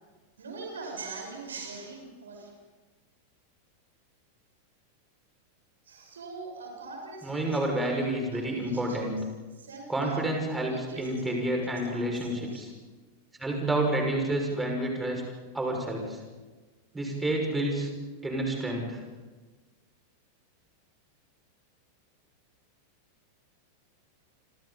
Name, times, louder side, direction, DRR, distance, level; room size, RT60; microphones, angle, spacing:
voice 1, 0.4-2.5 5.8-9.2 9.5-10.3 10.7-12.6, right 3 dB, 70° right, 1 dB, 6.2 m, -43 dB
voice 2, 7.2-9.2 9.9-12.7 13.4-15.2 15.5-16.2 16.9-17.9 18.2-19.0, right 1 dB, 10° right, 1 dB, 6.1 m, -29 dB
29.0 x 26.5 x 4.2 m, 1.3 s
figure-of-eight pair, 90°, 0 cm